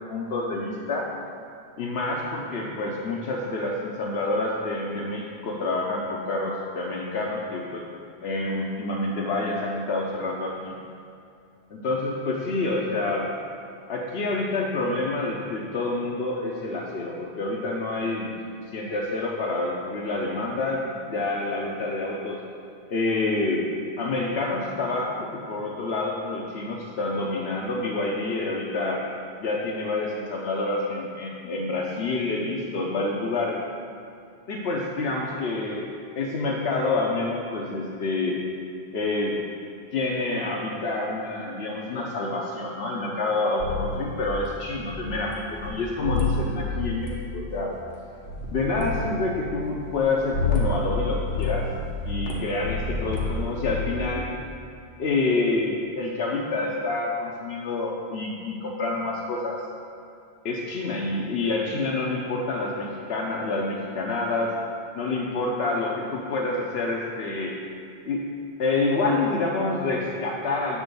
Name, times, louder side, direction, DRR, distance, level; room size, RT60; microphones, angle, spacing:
voice 1, 0.1-1.1 1.8-7.8 8.2-10.8 11.7-13.3 13.9-18.3 18.7-22.4 22.9-23.6 24.0-29.0 29.4-33.6 34.5-35.9 36.2-38.4 38.9-39.3 39.9-47.7 48.5-51.7 52.0-54.3 55.0-59.6 60.4-64.5 64.9-67.5 68.1-68.2 68.6-70.8, left 2 dB, 90° left, -3 dB, 1.0 m, -27 dB
sound 1, 43.6-45.3 45.6-45.7 46.0-47.1 47.4-47.9 48.3-48.5 48.7-50.0 50.3-50.9 51.3-54.0, left 3 dB, 70° left, 1.5 m, -29 dB
8.5 x 3.9 x 6.8 m, 2.5 s
omnidirectional pair, 1.0 m